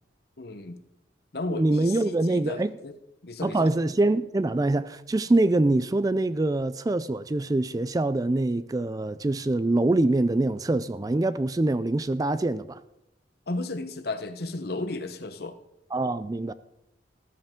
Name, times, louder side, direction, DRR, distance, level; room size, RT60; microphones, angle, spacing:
voice 1, 0.4-0.8 1.3-2.9 3.2-3.7 13.5-15.6, left 2 dB, 55° left, 1.0 m, -34 dB
voice 2, 1.5-2.7 3.4-12.8 15.9-16.5, right 2 dB, 20° right, 0.3 m, -24 dB
14.5 x 13.0 x 3.7 m
head